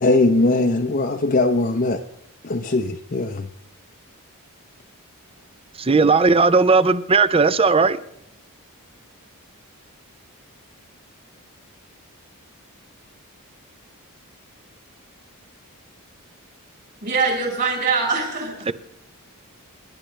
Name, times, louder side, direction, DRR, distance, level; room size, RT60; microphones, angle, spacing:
voice 1, 0.0-2.0 2.4-3.5, left 2 dB, 40° left, 0.7 m, -20 dB
voice 2, 5.8-8.0 18.7-18.8, right 4 dB, 25° right, 0.6 m, -16 dB
voice 3, 17.0-18.7, right 4 dB, 50° right, 5.6 m, -23 dB
28.0 x 11.5 x 3.3 m
head